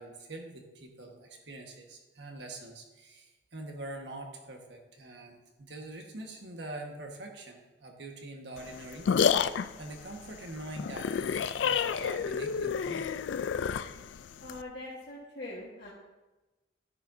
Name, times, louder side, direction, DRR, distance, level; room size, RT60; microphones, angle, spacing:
voice 1, 0.0-13.1, right 2 dB, 70° right, 2 dB, 1.5 m, -44 dB
sound 1, 8.6-14.6, left 7 dB, 80° left, 0.3 m, -30 dB
voice 2, 14.4-15.9, left 2 dB, 60° left, -6 dB, 1.5 m, -42 dB
11.5 x 10.5 x 2.7 m, 1.1 s
head